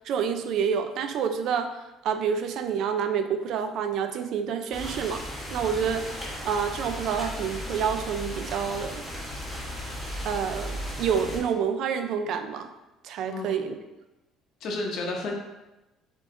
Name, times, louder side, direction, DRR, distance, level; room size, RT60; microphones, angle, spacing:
voice 1, 0.1-1.8 2.0-5.2 5.5-6.1 6.4-9.0 10.2-12.7 13.0-13.8, right 7 dB, 55° right, 8 dB, 0.4 m, -28 dB
sound 1, 4.7-11.4, equal, 5° right, 1.1 m, -36 dB
voice 2, 13.3-13.6 14.6-15.3, left 2 dB, 50° left, 1 dB, 0.7 m, -31 dB
3.7 x 3.6 x 3.7 m, 1.0 s
cardioid pair, 170°, 0 cm